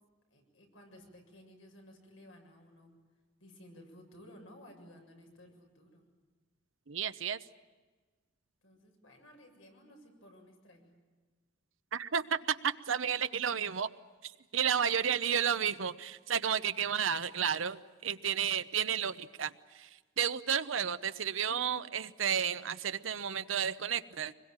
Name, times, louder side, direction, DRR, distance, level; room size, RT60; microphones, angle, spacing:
voice 1, 0.3-2.9 3.4-6.1 8.6-10.9 14.6-14.8, left 1 dB, 90° left, 2 dB, 7.2 m, -56 dB
voice 2, 6.9-7.4 11.9-13.9 14.2-19.9 20.2-24.3, right 8 dB, 85° right, 11 dB, 0.8 m, -32 dB
25.0 x 22.0 x 8.9 m, 1.4 s
head